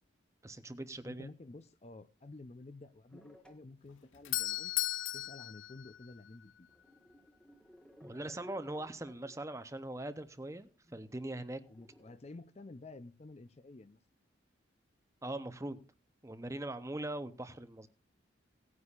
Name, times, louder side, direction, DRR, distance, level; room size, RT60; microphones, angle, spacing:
voice 1, 0.4-1.3 8.0-11.6 15.2-15.8 16.2-17.9, right 1 dB, 15° right, 0.7 m, -41 dB
voice 2, 1.0-4.7 5.1-6.7 11.7-14.0, left 2 dB, 35° left, 0.5 m, -51 dB
sound 1, 3.1-3.8 4.3-4.4 5.3-5.4 5.7-5.8 6.7-9.3 9.8-9.9 10.2-10.5 10.8-12.2, equal, 5° left, 1.1 m, -57 dB
Doorbell, 3.9-6.7, left 16 dB, 80° left, 0.5 m, -37 dB
18.0 x 9.6 x 2.4 m
head